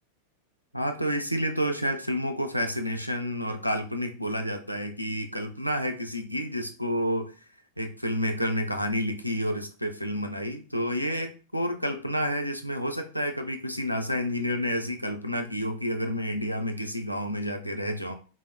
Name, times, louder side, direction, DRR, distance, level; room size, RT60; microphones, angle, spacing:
voice 1, 0.7-7.3 7.8-18.1, equal, 90° left, 5 dB, 0.3 m, -29 dB
3.8 x 2.1 x 2.4 m, 0.37 s
figure-of-eight pair, 90°, 0 cm